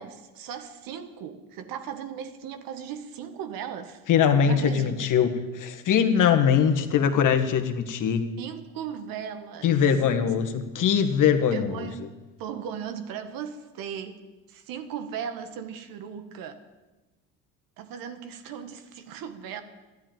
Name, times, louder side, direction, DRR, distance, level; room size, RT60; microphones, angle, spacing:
voice 1, 0.0-4.0 4.4-4.9 8.4-9.7 11.5-12.1 12.4-14.2 14.5-16.6 17.8-19.6, right 8 dB, 70° right, 8 dB, 1.8 m, -37 dB
voice 2, 4.1-8.2 9.6-11.8, left 7 dB, 60° left, 7 dB, 1.9 m, -22 dB
13.0 x 11.5 x 9.3 m, 1.1 s
supercardioid pair, 85°, 35 cm